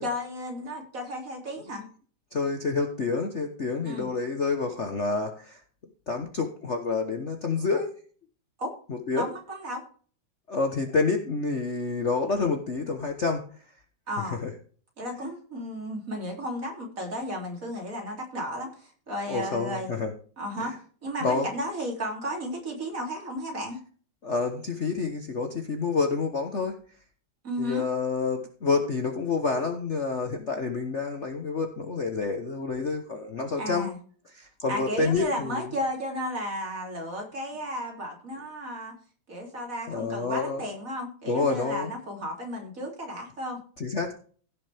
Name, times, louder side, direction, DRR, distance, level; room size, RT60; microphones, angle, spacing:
voice 1, 0.0-1.8 3.9-4.1 8.6-8.7 9.1-9.8 14.1-14.4 15.0-19.9 20.4-20.7 21.0-23.8 27.4-27.8 33.6-34.0 34.7-38.9 39.3-43.6, equal, 40° right, 0 dB, 3.5 m, -33 dB
voice 2, 2.3-5.6 6.1-7.9 8.9-9.3 10.5-13.4 14.4-14.5 19.3-20.1 20.6-20.8 21.2-21.5 24.2-26.8 27.6-33.9 34.3-35.7 39.9-40.6 41.3-41.9 43.8-44.1, left 4 dB, 40° left, 4 dB, 1.2 m, -28 dB
16.5 x 6.8 x 3.5 m, 0.42 s
omnidirectional pair, 2.3 m